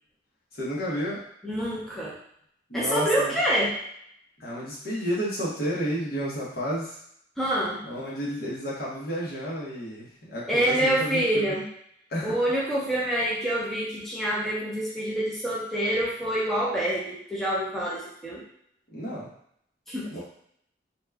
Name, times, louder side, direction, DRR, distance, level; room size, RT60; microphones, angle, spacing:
voice 1, 0.5-1.2 2.7-3.4 4.4-7.0 7.8-11.5 12.1-12.4 18.9-19.3 20.1-20.2, equal, 55° left, -5 dB, 1.0 m, -31 dB
voice 2, 1.4-2.2 2.7-3.8 7.4-7.8 10.5-11.7 12.2-18.4 19.9-20.2, right 1 dB, ahead, -7 dB, 0.7 m, -26 dB
2.9 x 2.3 x 3.4 m, 0.69 s
head